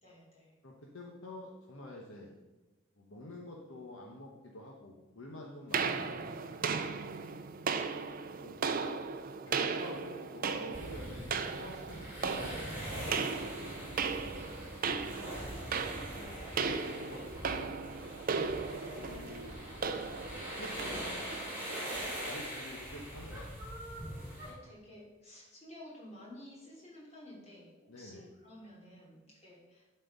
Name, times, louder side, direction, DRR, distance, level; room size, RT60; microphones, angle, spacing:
voice 1, 0.0-0.5 7.0-7.9 14.7-16.1 24.0-29.9, left 1 dB, 30° left, -4 dB, 2.8 m, -54 dB
voice 2, 0.6-2.3 3.0-6.5 8.4-9.0 9.4-14.3 16.1-16.4 16.8-18.1 18.9-19.7 20.5-21.2 22.2-23.7 24.1-24.4 27.9-28.2, left 1 dB, 65° left, -1 dB, 1.1 m, -49 dB
sound 1, 5.7-22.1, right 5 dB, 40° right, 0.5 m, -37 dB
sound 2, 10.7-24.5, right 1 dB, 10° right, 3.3 m, -42 dB
11.5 x 4.4 x 5.3 m, 1.1 s
head